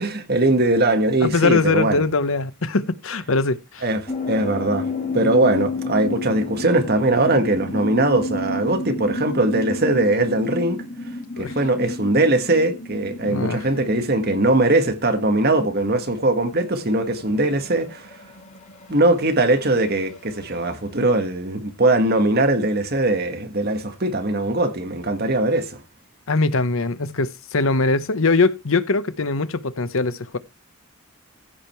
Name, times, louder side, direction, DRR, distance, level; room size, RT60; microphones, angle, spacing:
voice 1, 0.0-2.0 3.8-4.0 4.3-4.9 5.1-10.8 11.4-18.2 18.9-25.8, right 2 dB, 45° right, 1.7 m, -20 dB
voice 2, 1.2-3.8 11.4-11.6 13.3-13.6 26.3-30.4, left 3 dB, 65° left, 0.9 m, -21 dB
sound 1, 4.1-20.1, left 2 dB, 35° left, 3.6 m, -31 dB
15.0 x 5.2 x 4.5 m
head